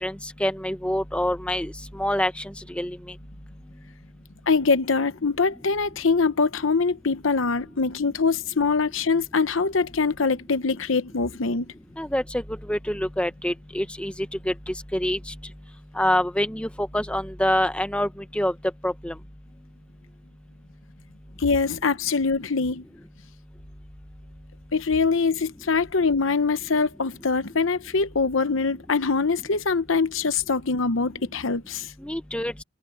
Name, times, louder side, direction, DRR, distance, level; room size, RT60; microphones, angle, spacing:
voice 1, 0.4-1.7 2.0-2.3 2.8-3.0 12.0-12.4 12.7-14.1 14.5-15.2 16.0-18.1 18.3-18.5 18.8-19.1 32.0-32.5, left 1 dB, 5° left, 0.9 m, -25 dB
voice 2, 4.5-11.7 21.4-22.8 24.7-31.9, left 4 dB, 75° left, 0.9 m, -23 dB
head